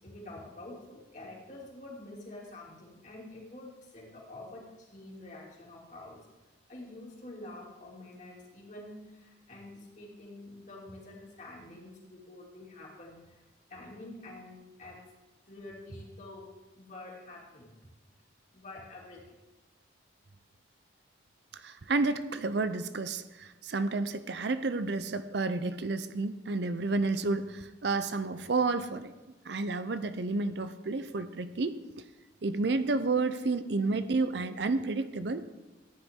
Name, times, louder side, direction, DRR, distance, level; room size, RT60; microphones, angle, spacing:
voice 1, 0.0-6.2 6.7-13.4 13.7-15.0 15.5-16.5 16.7-17.7 18.5-19.2 33.4-33.6, left 2 dB, 40° left, -3 dB, 2.9 m, -47 dB
voice 2, 21.5-29.1 29.5-31.8 32.4-35.4, right 3 dB, 65° right, 12 dB, 0.6 m, -30 dB
14.5 x 9.9 x 3.7 m, 1.1 s
head